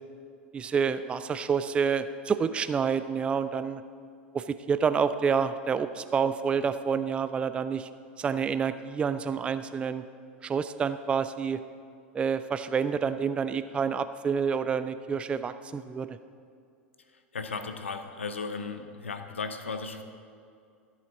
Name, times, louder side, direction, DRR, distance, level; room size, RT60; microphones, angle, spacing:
voice 1, 0.5-3.8 4.3-7.9 8.2-10.0 10.4-11.6 12.1-16.2, right 6 dB, 15° right, 12 dB, 0.3 m, -28 dB
voice 2, 17.3-20.0, left 4 dB, 75° left, 8 dB, 0.7 m, -35 dB
13.5 x 8.0 x 3.9 m, 2.4 s
figure-of-eight pair, 85°, 7 cm